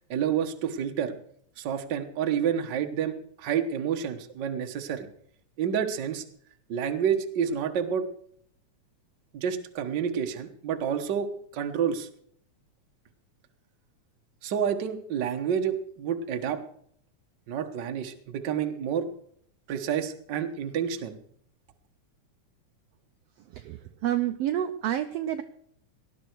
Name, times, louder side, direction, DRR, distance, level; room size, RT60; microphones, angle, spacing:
voice 1, 0.1-1.1 1.6-5.1 5.6-6.2 6.7-8.0 9.3-11.3 11.5-12.1 14.4-16.6 17.5-19.0 19.7-21.2, right 8 dB, 50° right, 6 dB, 1.4 m, -29 dB
voice 2, 23.4-25.4, right 11 dB, 75° right, 8 dB, 1.5 m, -29 dB
18.5 x 11.5 x 4.6 m, 0.66 s
omnidirectional pair, 3.4 m